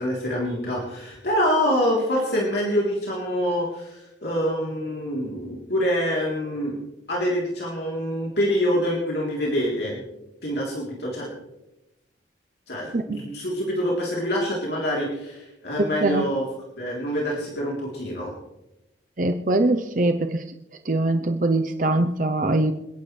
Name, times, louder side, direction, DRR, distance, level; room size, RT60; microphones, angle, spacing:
voice 1, 0.0-6.8 7.1-10.0 10.4-11.3 12.7-16.4 16.8-18.3, equal, 60° left, -4 dB, 3.6 m, -26 dB
voice 2, 19.2-20.4 20.8-22.7, right 2 dB, 45° right, 6 dB, 0.7 m, -22 dB
28.0 x 10.5 x 3.3 m, 0.91 s
head